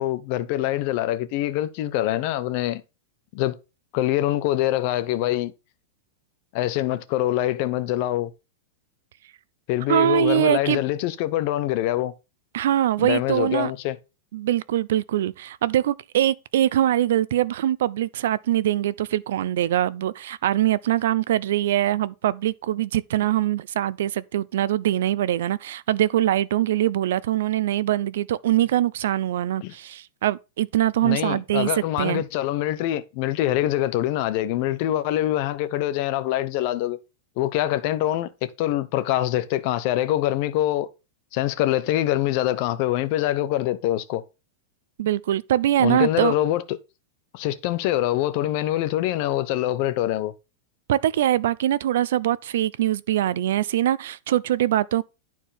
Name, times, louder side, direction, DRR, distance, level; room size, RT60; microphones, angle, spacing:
voice 1, 0.0-2.8 3.3-3.6 3.9-5.5 6.5-8.3 9.7-12.1 13.0-14.0 29.6-29.7 31.0-37.0 37.4-40.9 41.3-44.2 45.8-46.6 47.3-50.3, left 13 dB, 35° left, 0.8 m, -24 dB
voice 2, 9.9-10.8 12.5-13.7 14.3-32.2 45.0-46.3 50.9-55.0, right 12 dB, 60° right, 0.5 m, -23 dB
11.0 x 4.5 x 5.7 m
supercardioid pair, 180°, 0 cm